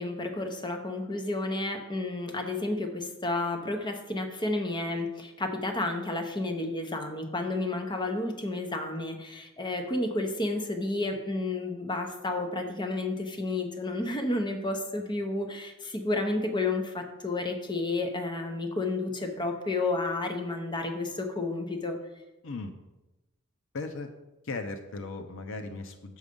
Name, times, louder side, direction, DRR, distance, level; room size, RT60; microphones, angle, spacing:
voice 1, 0.0-22.0, left 2 dB, 20° left, 4 dB, 0.9 m, -31 dB
voice 2, 23.7-24.1 24.4-26.2, left 3 dB, 65° left, 7 dB, 0.7 m, -37 dB
7.1 x 6.5 x 5.2 m, 1.0 s
head